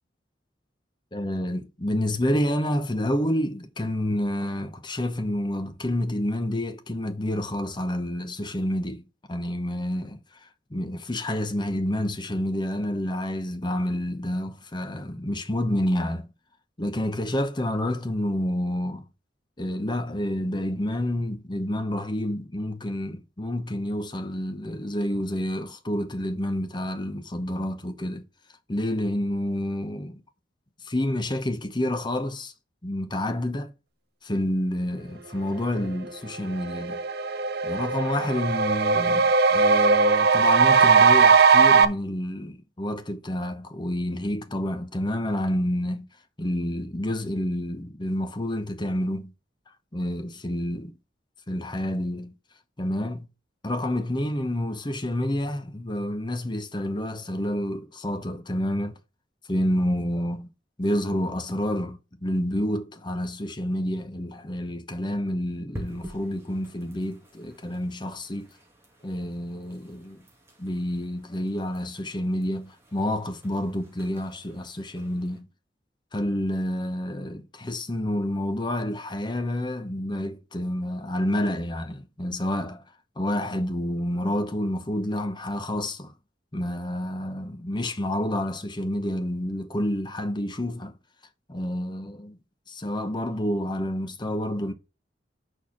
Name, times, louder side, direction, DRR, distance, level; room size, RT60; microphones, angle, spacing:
voice 1, 1.1-10.2 10.7-16.3 16.8-19.1 19.6-28.2 28.7-30.2 30.8-32.5 32.8-33.7 34.2-37.0 37.6-46.1 46.4-49.3 49.9-50.8 51.5-52.3 52.8-53.3 53.6-59.0 59.5-60.5 60.8-68.5 69.0-70.2 70.6-75.5 76.1-82.8 83.2-86.1 86.5-91.0 91.5-92.4 92.7-94.7, left 1 dB, 25° left, 0.9 m, -29 dB
sound 1, 36.1-36.2 36.5-41.9, right 5 dB, 60° right, 0.6 m, -19 dB
sound 2, 65.7-75.4, equal, 15° right, 2.0 m, -48 dB
6.4 x 4.5 x 5.8 m
head